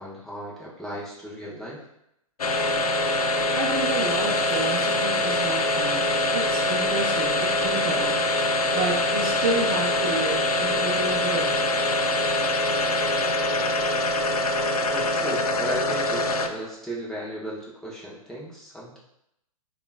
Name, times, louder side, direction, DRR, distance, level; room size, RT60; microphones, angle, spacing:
voice 1, 0.0-1.8 14.9-19.0, equal, 5° left, -7 dB, 0.7 m, -36 dB
sound 1, 2.4-16.7, left 1 dB, 90° left, 0.4 m, -24 dB
voice 2, 3.5-6.1 6.3-8.2 8.7-11.6, right 2 dB, 30° right, 0 dB, 0.7 m, -30 dB
6.6 x 2.4 x 2.3 m, 0.81 s
figure-of-eight pair, 115°, 19 cm